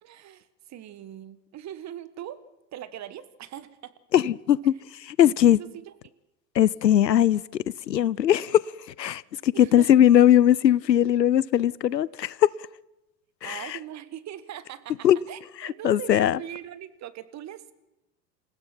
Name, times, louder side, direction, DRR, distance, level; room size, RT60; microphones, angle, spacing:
voice 1, 0.0-2.4 2.7-3.9 5.6-6.1 6.6-6.7 9.5-10.1 13.4-17.7, right 11 dB, 35° right, 1.5 m, -41 dB
voice 2, 4.1-4.7 5.0-5.6 6.6-7.4 7.9-8.6 9.0-12.3 13.4-13.6 15.0-15.2 15.8-16.4, left 11 dB, 90° left, 0.6 m, -19 dB
27.5 x 16.0 x 5.9 m
figure-of-eight pair, 80°, 49 cm